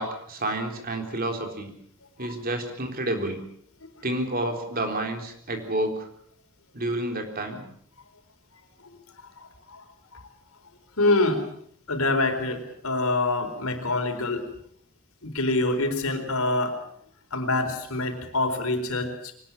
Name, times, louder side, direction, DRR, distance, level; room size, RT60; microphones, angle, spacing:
voice 1, 0.0-1.7 2.2-3.4 4.0-6.1 6.7-7.6, right 1 dB, 45° right, 4 dB, 3.9 m, -29 dB
voice 2, 9.4-9.8 10.1-10.2 11.0-11.4 11.9-14.4 15.2-16.8 17.3-19.3, left 2 dB, 80° left, 5 dB, 4.3 m, -26 dB
24.0 x 19.5 x 7.3 m, 0.68 s
head